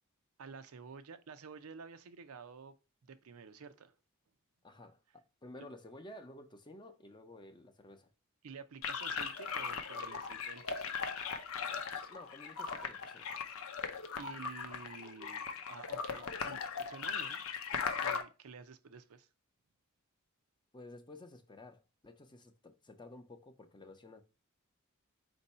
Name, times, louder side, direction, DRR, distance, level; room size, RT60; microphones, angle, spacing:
voice 1, 0.4-2.7 3.0-3.9 8.4-11.1 14.1-19.3, right 5 dB, 85° right, 0.5 m, -51 dB
voice 2, 4.6-8.1 12.1-13.3 20.7-24.2, left 2 dB, 20° left, 0.6 m, -53 dB
sound 1, 8.8-18.2, left 6 dB, 75° left, 0.6 m, -39 dB
4.5 x 2.7 x 4.1 m
head